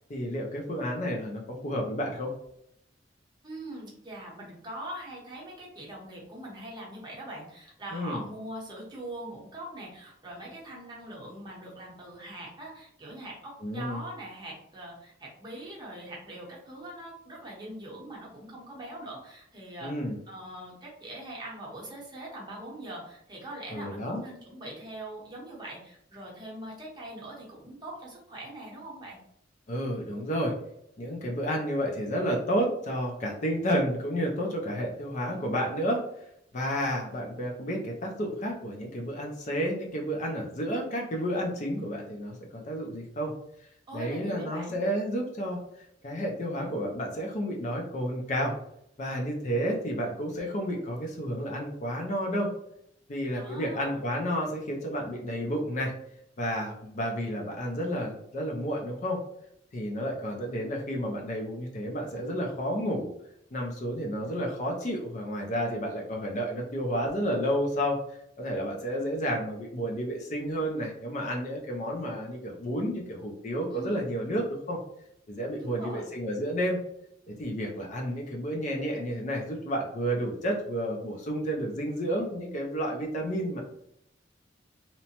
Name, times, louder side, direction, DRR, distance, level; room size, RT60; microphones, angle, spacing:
voice 1, 0.1-2.3 7.9-8.2 13.6-14.0 19.8-20.2 23.7-24.2 29.7-30.5 31.0-36.0 36.5-43.3 43.9-45.6 46.0-48.6 49.0-52.5 53.1-55.9 56.4-59.2 59.7-63.1 63.5-68.0 68.4-74.8 75.3-76.8 77.3-83.6, equal, 40° left, 0 dB, 0.5 m, -31 dB
voice 2, 3.4-19.9 20.3-29.2 43.9-44.8 53.4-54.0 73.7-74.0 75.6-76.1, right 1 dB, 25° right, -4 dB, 0.8 m, -42 dB
2.8 x 2.1 x 2.8 m, 0.75 s
head